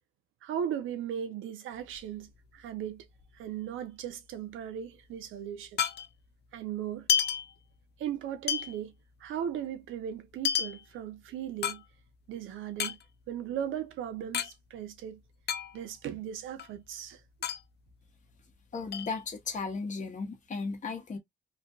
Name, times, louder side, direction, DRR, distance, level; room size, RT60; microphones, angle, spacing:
voice 1, 0.4-3.1 3.3-5.8 6.5-7.1 8.0-8.9 9.2-11.8 12.3-13.0 13.3-15.2 15.7-17.2, right 9 dB, 85° right, 0.8 m, -37 dB
sound 1, 1.7-3.5 3.7-3.8 4.1-6.4 6.9-8.1 8.5-12.3 12.7-14.5 14.8-14.9 15.2-16.1 16.5-18.5 18.9-19.7, left 9 dB, 55° left, 0.6 m, -33 dB
voice 2, 18.7-21.2, left 4 dB, 40° left, 1.2 m, -35 dB
3.2 x 2.6 x 2.4 m
cardioid pair, 90°, 20 cm